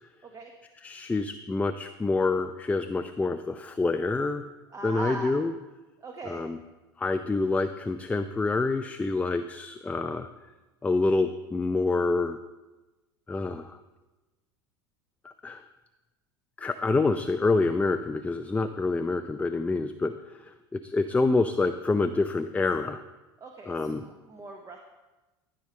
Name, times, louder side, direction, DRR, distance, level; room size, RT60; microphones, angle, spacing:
voice 1, 0.8-4.4 4.8-5.5 6.3-6.6 7.0-10.3 10.8-12.4 13.3-13.8 15.2-15.6 16.6-20.1 20.4-23.0 23.6-24.0, left 3 dB, 10° left, 8 dB, 0.4 m, -27 dB
voice 2, 4.7-5.4 6.0-6.4 23.4-24.8, right 3 dB, 25° right, 2 dB, 1.1 m, -40 dB
12.0 x 5.0 x 4.2 m, 1.1 s
hypercardioid pair, 85°, 12 cm